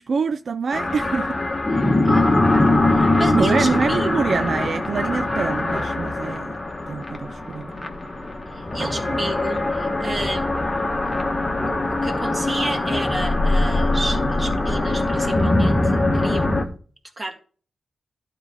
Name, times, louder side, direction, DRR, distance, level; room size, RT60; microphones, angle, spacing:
voice 1, 0.0-1.4 3.3-6.5 6.9-7.7 8.8-8.9, right 5 dB, 55° right, 0.3 m, -25 dB
sound 1, 0.7-16.6, left 2 dB, 20° left, 1.4 m, -22 dB
voice 2, 2.6-4.1 8.5-10.5 11.6-16.7 17.2-17.3, right 2 dB, 20° right, 1.9 m, -31 dB
12.0 x 4.1 x 6.4 m
wide cardioid pair, 120°, 0 cm